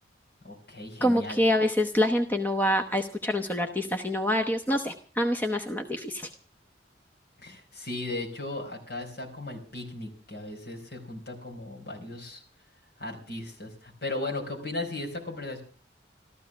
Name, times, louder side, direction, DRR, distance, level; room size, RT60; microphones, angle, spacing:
voice 1, 0.4-1.4 7.4-12.4 13.0-15.6, left 2 dB, 55° left, 0 dB, 4.7 m, -36 dB
voice 2, 1.0-6.3, left 1 dB, 10° left, 5 dB, 0.9 m, -26 dB
14.5 x 13.5 x 6.2 m, 0.42 s
head